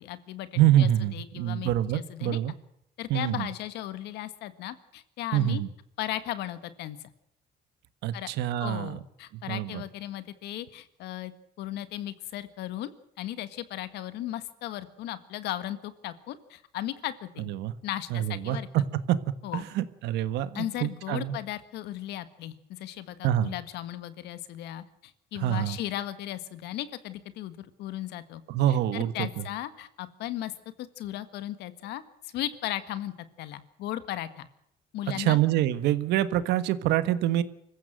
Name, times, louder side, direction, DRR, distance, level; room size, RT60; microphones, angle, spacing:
voice 1, 0.0-2.4 3.0-5.6 6.0-7.1 8.1-8.3 8.6-11.3 11.6-12.9 13.2-17.5 17.8-18.7 19.4-19.6 20.5-28.4 28.7-30.5 30.8-33.1 33.4-34.5 34.9-35.4, left 13 dB, 85° left, 13 dB, 1.7 m, -36 dB
voice 2, 0.5-2.5 3.1-3.5 5.3-5.7 8.0-9.0 9.3-9.8 17.5-17.7 18.1-18.6 19.1-19.2 19.5-21.4 23.2-23.5 25.4-25.8 28.5-29.4 35.1-37.4, right 12 dB, 85° right, 13 dB, 1.5 m, -26 dB
25.0 x 15.0 x 7.7 m, 0.77 s
cardioid pair, 110°, 17 cm